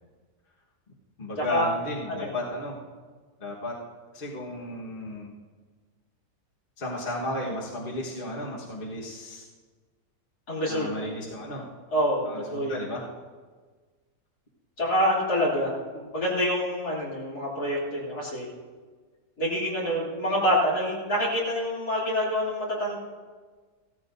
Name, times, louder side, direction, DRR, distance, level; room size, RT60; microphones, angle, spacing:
voice 1, 1.2-2.8 3.4-3.7 4.1-5.3 6.8-9.5 10.7-11.7 12.2-13.1, left 1 dB, 35° left, -4 dB, 1.7 m, -34 dB
voice 2, 10.5-10.9 11.9-12.8 14.8-18.4 19.4-23.0, equal, 70° left, -6 dB, 3.7 m, -26 dB
16.0 x 14.0 x 2.7 m, 1.4 s
omnidirectional pair, 1.7 m